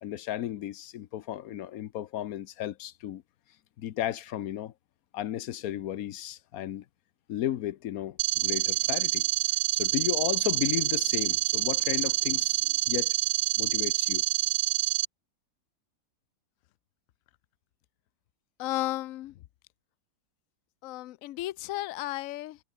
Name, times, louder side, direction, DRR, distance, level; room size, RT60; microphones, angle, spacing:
voice 1, 0.0-3.2 3.8-4.7 5.1-6.8 7.3-9.3 9.7-13.1 13.6-14.2, left 12 dB, 60° left, 1.0 m, -34 dB
sound 1, 8.2-15.1, right 15 dB, 75° right, 0.8 m, -27 dB
voice 2, 18.6-19.4 20.8-22.6, left 16 dB, 85° left, 0.7 m, -34 dB
omnidirectional pair, 2.0 m